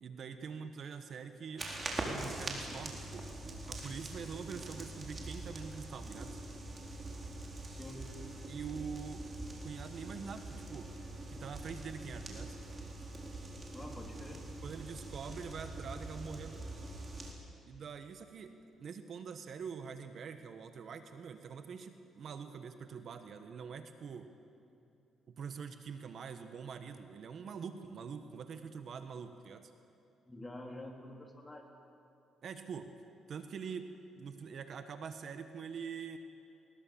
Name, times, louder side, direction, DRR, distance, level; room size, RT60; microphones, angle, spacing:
voice 1, 0.0-1.7 2.0-3.3 3.7-6.4 8.5-9.2 9.6-10.9 11.3-12.6 14.6-16.6 17.7-24.3 25.3-29.7 32.4-32.9 33.3-36.2, right 6 dB, 60° right, 8 dB, 1.3 m, -44 dB
sound 1, 1.6-17.3, right 2 dB, 30° right, 4.2 m, -44 dB
voice 2, 7.7-8.2 13.7-14.4 30.3-31.7, left 1 dB, 15° left, 1 dB, 3.5 m, -47 dB
20.5 x 20.0 x 7.3 m, 2.7 s
cardioid pair, 90°, 0 cm